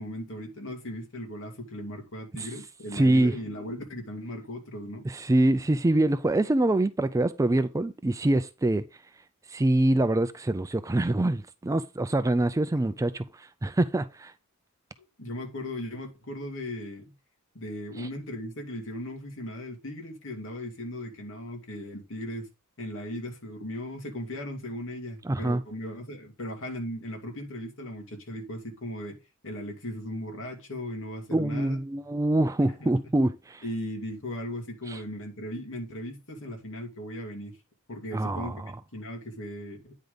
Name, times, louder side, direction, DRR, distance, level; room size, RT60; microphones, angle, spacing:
voice 1, 0.0-5.0 15.2-17.0 17.5-22.5 22.8-29.1 29.4-31.8 32.6-32.9 33.6-37.5 37.9-38.5 38.9-40.0, left 1 dB, 60° left, 2.5 m, -37 dB
voice 2, 2.9-3.4 5.0-8.9 9.5-14.3 18.0-18.1 25.2-25.6 31.3-33.6 34.9-35.0 38.1-38.7, right 1 dB, 15° right, 0.4 m, -25 dB
9.3 x 5.1 x 3.9 m
head